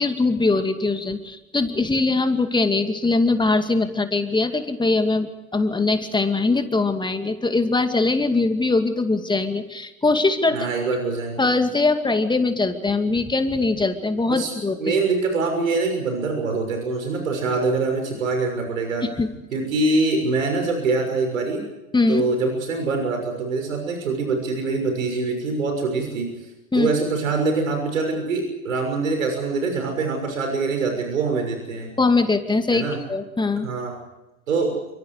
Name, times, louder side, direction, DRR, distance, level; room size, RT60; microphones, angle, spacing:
voice 1, 0.0-10.6 11.4-14.9 19.0-19.3 21.9-22.2 26.7-26.9 32.0-33.7, left 3 dB, 10° left, 7 dB, 2.4 m, -21 dB
voice 2, 10.5-11.4 14.3-14.5 14.8-19.0 19.5-21.6 22.1-31.9 32.7-33.0 33.6-33.9 34.5-34.8, right 3 dB, 70° right, 4 dB, 6.5 m, -24 dB
29.0 x 26.0 x 4.9 m, 1.0 s
figure-of-eight pair, 85°, 41 cm